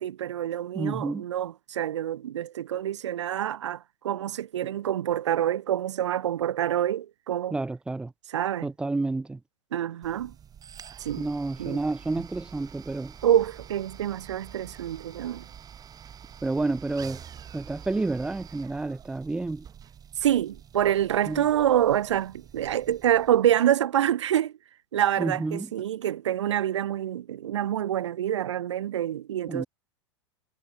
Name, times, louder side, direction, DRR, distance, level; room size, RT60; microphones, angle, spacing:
voice 1, 0.0-7.6 8.3-8.7 9.7-10.3 11.0-11.3 11.6-11.8 13.2-15.4 20.2-24.5 24.9-29.7, right 11 dB, 70° right, 0.6 m, -26 dB
voice 2, 0.7-1.3 7.5-8.1 8.6-9.4 11.2-13.2 16.4-17.2 17.5-19.7 21.3-21.5 25.2-25.7 29.5-29.7, right 3 dB, 5° right, 0.4 m, -30 dB
sound 1, 10.0-23.5, right 8 dB, 25° right, 1.8 m, -47 dB
figure-of-eight pair, 90°, 16 cm